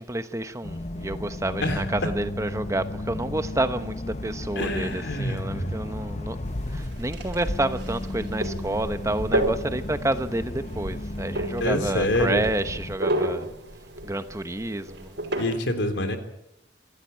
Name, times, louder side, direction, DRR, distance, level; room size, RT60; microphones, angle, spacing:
voice 1, 0.0-13.5 14.0-15.2, right 1 dB, 15° right, 1.0 m, -29 dB
sound 1, 0.6-12.9, left 1 dB, 40° left, 0.9 m, -34 dB
voice 2, 4.6-5.7 11.6-12.4 15.4-16.2, left 1 dB, 85° left, 3.6 m, -26 dB
sound 2, 6.4-15.5, right 1 dB, 65° right, 5.5 m, -32 dB
26.5 x 13.0 x 9.2 m
head